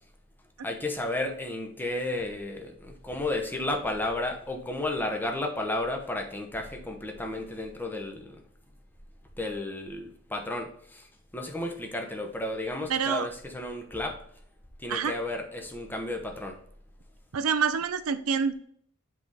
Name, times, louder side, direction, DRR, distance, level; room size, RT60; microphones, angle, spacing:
voice 1, 0.6-8.4 9.4-14.2 14.8-16.6, left 2 dB, 10° left, 3 dB, 0.9 m, -33 dB
voice 2, 12.9-13.3 14.9-15.1 17.3-18.5, right 6 dB, 85° right, 12 dB, 0.6 m, -26 dB
7.8 x 3.7 x 4.0 m, 0.63 s
head